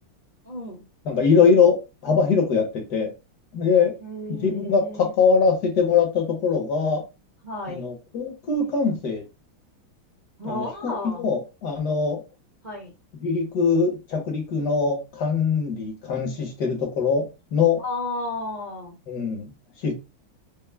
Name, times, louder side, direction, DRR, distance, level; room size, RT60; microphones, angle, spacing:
voice 1, 0.4-0.8 4.0-5.1 7.4-7.8 10.4-11.3 12.6-12.9 17.8-19.0, left 2 dB, 35° right, 0.8 m, -33 dB
voice 2, 1.1-3.1 3.5-3.9 4.3-7.0 7.7-9.2 10.4-12.2 13.1-17.8 19.1-19.5 19.8-19.9, left 5 dB, 60° left, 1.4 m, -22 dB
5.4 x 2.1 x 2.2 m
omnidirectional pair, 2.3 m